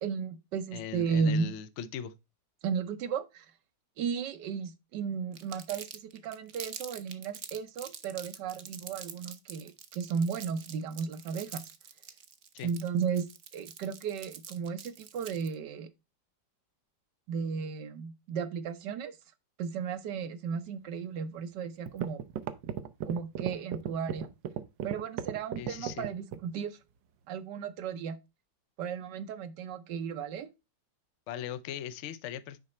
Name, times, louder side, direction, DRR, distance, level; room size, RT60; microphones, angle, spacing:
voice 1, 0.0-1.5 2.6-3.5 4.0-11.6 12.6-13.3 13.5-15.9 17.3-19.2 19.6-22.2 23.1-24.3 24.8-26.8 27.3-28.2 28.8-30.5, right 6 dB, 75° right, 1.3 m, -34 dB
voice 2, 0.7-2.1 12.5-12.7 25.6-26.1 31.3-32.6, left 9 dB, 65° left, 0.7 m, -39 dB
Crumpling crinkling, 5.3-15.5, right 7 dB, 55° right, 0.8 m, -45 dB
sound 1, 21.4-21.5 21.9-26.5, right 9 dB, 90° right, 1.4 m, -35 dB
6.5 x 4.9 x 4.1 m
omnidirectional pair, 1.9 m